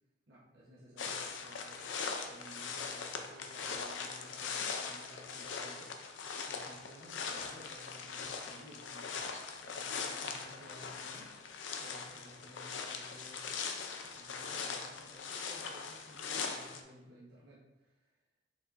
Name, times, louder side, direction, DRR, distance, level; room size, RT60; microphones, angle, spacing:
voice 1, 0.3-6.1 6.5-11.5 11.8-18.1, equal, 65° right, -7 dB, 1.0 m, -56 dB
sound 1, 1.0-16.8, left 5 dB, 85° left, 0.5 m, -41 dB
5.1 x 3.9 x 2.5 m, 1.0 s
head